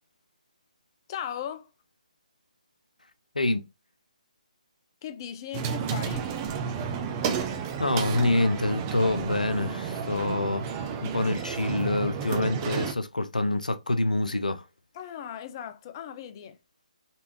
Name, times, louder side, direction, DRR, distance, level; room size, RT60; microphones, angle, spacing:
voice 1, 1.1-1.7 5.0-6.3 14.9-16.6, left 9 dB, 30° left, 0.6 m, -38 dB
voice 2, 3.3-3.7 7.8-14.6, left 2 dB, 85° left, 0.8 m, -26 dB
sound 1, 5.5-12.9, right 6 dB, 25° right, 0.7 m, -31 dB
4.3 x 3.4 x 3.0 m
figure-of-eight pair, 145°, 4 cm